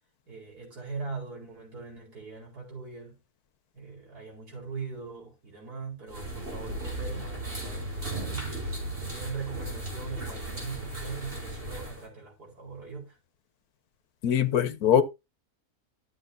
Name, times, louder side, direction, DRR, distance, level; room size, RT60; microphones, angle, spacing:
voice 1, 0.3-3.2 3.7-8.7 9.0-13.2, right 4 dB, 80° right, 4.9 m, -40 dB
sound 1, 6.1-12.0, right 1 dB, 35° right, 4.3 m, -36 dB
voice 2, 14.2-15.0, left 8 dB, 75° left, 1.4 m, -22 dB
12.5 x 7.5 x 2.7 m
omnidirectional pair, 1.6 m